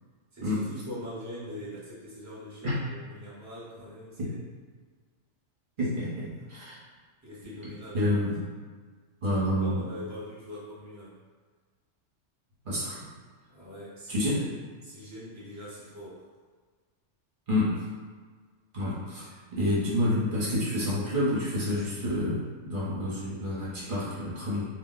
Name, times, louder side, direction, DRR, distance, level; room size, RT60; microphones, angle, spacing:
voice 1, 0.3-4.3 7.2-8.3 9.3-11.2 13.5-16.2, equal, 15° right, -9 dB, 0.8 m, -43 dB
voice 2, 5.8-6.8 7.9-8.3 9.2-9.8 12.6-13.0 14.1-14.4 17.5-17.8 18.7-24.7, left 1 dB, 45° right, -8 dB, 1.0 m, -28 dB
2.6 x 2.0 x 3.8 m, 1.5 s
omnidirectional pair, 1.3 m